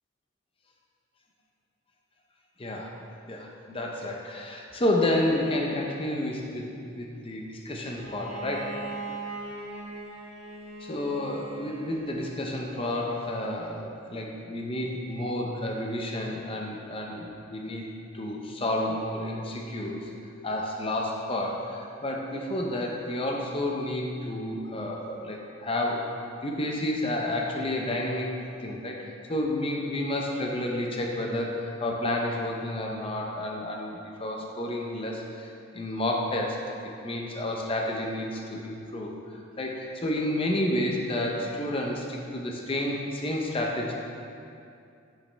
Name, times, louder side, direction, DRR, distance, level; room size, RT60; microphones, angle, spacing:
voice 1, 2.6-2.9 3.3-8.8 10.8-17.9 18.1-20.1 20.4-26.1 26.4-29.0 29.3-36.6 37.0-39.1 39.6-43.9, left 1 dB, 25° left, -1 dB, 0.6 m, -30 dB
Bowed string instrument, 7.9-12.6, right 2 dB, 70° right, 1.6 m, -40 dB
10.0 x 5.2 x 3.3 m, 2.5 s
head